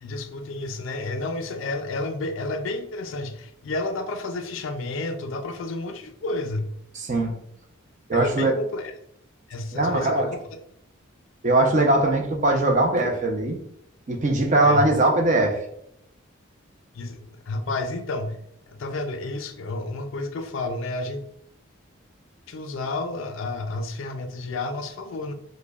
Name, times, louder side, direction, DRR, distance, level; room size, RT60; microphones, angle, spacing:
voice 1, 0.0-6.7 8.1-8.9 9.5-10.4 14.6-14.9 16.9-18.4 18.7-21.2 22.5-25.3, left 2 dB, 70° left, 8 dB, 0.4 m, -31 dB
voice 2, 6.9-7.3 8.1-8.5 9.7-10.3 11.4-13.6 14.1-15.6, right 2 dB, 35° right, 2 dB, 0.5 m, -21 dB
5.0 x 2.1 x 2.3 m, 0.74 s
head